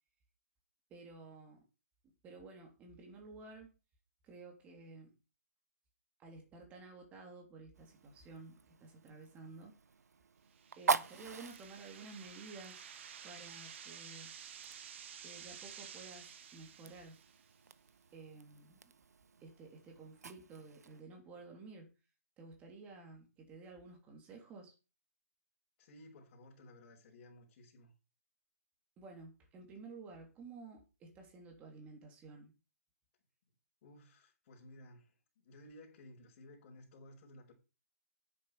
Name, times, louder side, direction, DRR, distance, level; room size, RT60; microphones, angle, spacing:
voice 1, 0.9-1.7 2.0-3.7 4.2-5.2 6.2-9.8 10.7-12.9 13.2-14.4 15.2-17.3 18.1-18.9 19.4-21.9 22.4-24.7 29.0-32.5, right 3 dB, 15° right, 3.3 m, -53 dB
Fire, 7.7-21.0, right 5 dB, 90° right, 1.0 m, -44 dB
sound 1, 10.6-17.5, right 8 dB, 50° right, 1.7 m, -52 dB
voice 2, 25.8-27.9 33.8-37.5, left 1 dB, 35° left, 5.4 m, -57 dB
10.5 x 8.9 x 5.1 m
hypercardioid pair, 155°, 8 cm